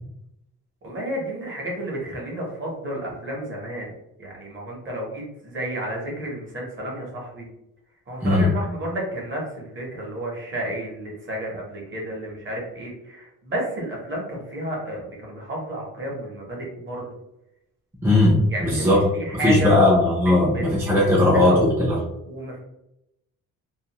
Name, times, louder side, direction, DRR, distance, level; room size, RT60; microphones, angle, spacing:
voice 1, 0.8-3.9 4.2-7.5 8.1-17.1 18.5-19.8 20.5-21.6 22.3-22.6, right 1 dB, 35° right, -2 dB, 0.9 m, -31 dB
voice 2, 18.0-19.0 19.4-22.0, left 1 dB, 5° right, -4 dB, 0.5 m, -18 dB
2.4 x 2.4 x 2.9 m, 0.85 s
cardioid pair, 145°, 34 cm